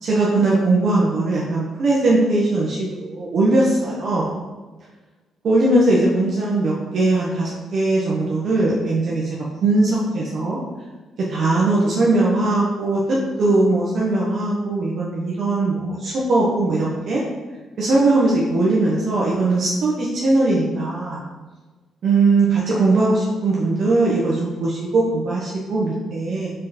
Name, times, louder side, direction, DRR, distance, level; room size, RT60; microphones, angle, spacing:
voice 1, 0.0-4.3 5.4-10.6 11.3-17.2 17.8-21.2 22.0-26.5, right 2 dB, 60° right, -5 dB, 1.3 m, -20 dB
5.2 x 4.8 x 4.3 m, 1.3 s
cardioid pair, 90°, 0 cm